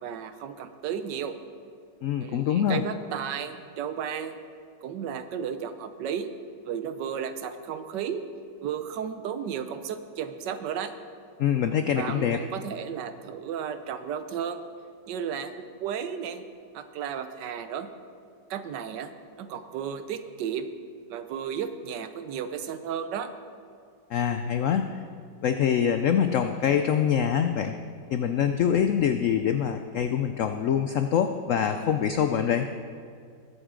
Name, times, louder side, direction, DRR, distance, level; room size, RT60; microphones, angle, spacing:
voice 1, 0.0-1.3 2.2-4.3 4.8-6.3 6.6-8.2 8.6-10.9 12.0-14.6 15.1-16.4 16.7-17.9 18.5-19.1 19.4-20.7 21.1-23.3, right 8 dB, 75° right, 10 dB, 1.3 m, -33 dB
voice 2, 2.0-2.8 11.4-12.4 24.1-25.0 25.4-27.8 28.1-32.7, left 8 dB, 80° left, 7 dB, 0.7 m, -25 dB
20.5 x 8.0 x 3.8 m, 2.2 s
omnidirectional pair, 1.9 m